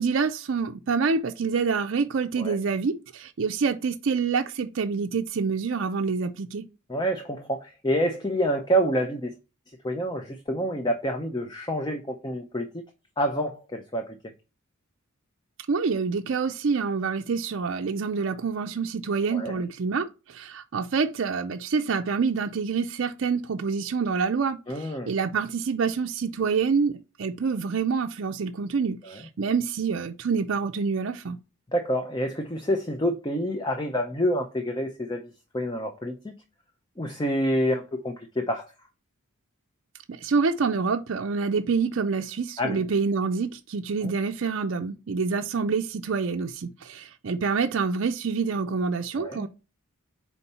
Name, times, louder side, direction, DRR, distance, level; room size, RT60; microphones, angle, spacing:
voice 1, 0.0-6.6 15.7-31.4 40.1-49.5, right 5 dB, 60° right, 0.4 m, -27 dB
voice 2, 6.9-9.3 9.8-12.8 13.2-14.2 19.3-19.6 24.7-25.1 31.7-36.3 37.0-38.7 42.6-42.8 44.0-44.1 49.2-49.4, equal, 20° left, 0.5 m, -28 dB
4.5 x 4.2 x 5.4 m
head